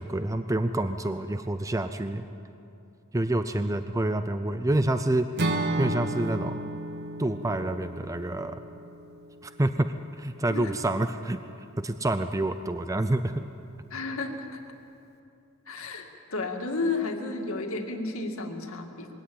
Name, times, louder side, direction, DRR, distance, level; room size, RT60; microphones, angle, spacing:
voice 1, 0.0-2.2 3.1-5.3 5.8-6.6 7.2-8.6 9.4-11.4 11.8-13.4, right 1 dB, 15° right, 9 dB, 0.5 m, -27 dB
Acoustic guitar / Strum, 5.4-9.5, right 1 dB, 50° right, 1.2 m, -32 dB
voice 2, 13.9-14.6 15.7-19.1, left 3 dB, 80° left, 4 dB, 2.1 m, -32 dB
22.0 x 17.0 x 8.7 m, 2.7 s
head